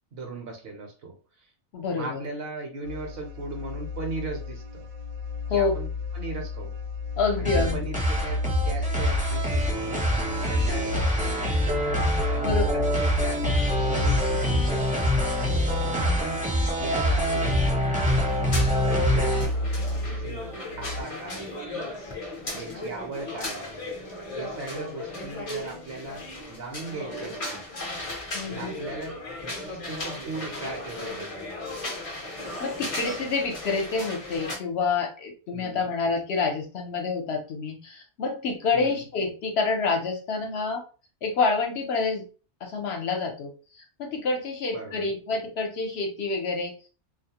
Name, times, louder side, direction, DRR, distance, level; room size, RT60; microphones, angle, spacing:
voice 1, 0.1-1.5 1.9-4.9 5.5-6.7 7.4-11.2 12.3-15.3 15.8-16.5 16.8-19.7 20.0-21.5 22.6-24.0 24.4-27.6 28.5-31.7 35.5-35.9 38.7-39.1 44.7-45.1, right 3 dB, 60° right, 2 dB, 0.9 m, -38 dB
voice 2, 1.7-2.2 5.5-5.7 7.2-7.8 12.4-12.7 28.3-28.7 32.6-40.8 41.2-42.2 42.6-46.9, left 4 dB, 65° left, 2 dB, 0.9 m, -28 dB
sound 1, 2.8-21.0, left 2 dB, 85° right, 0.9 m, -31 dB
sound 2, 7.4-19.4, equal, 10° right, 0.5 m, -25 dB
sound 3, 18.0-34.6, left 1 dB, 40° left, 0.5 m, -36 dB
2.3 x 2.0 x 2.8 m, 0.36 s
omnidirectional pair, 1.2 m